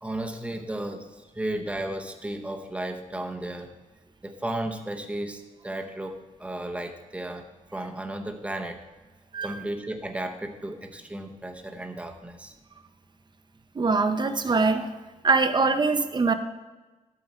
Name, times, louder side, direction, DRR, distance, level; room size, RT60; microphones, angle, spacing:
voice 1, 0.0-3.7 4.2-7.4 7.7-8.8 9.4-12.5, right 1 dB, 10° right, 4 dB, 0.9 m, -34 dB
voice 2, 13.8-15.0 15.2-16.3, right 4 dB, 35° right, 9 dB, 0.7 m, -23 dB
12.5 x 7.6 x 4.4 m, 1.2 s
wide cardioid pair, 130°, 13 cm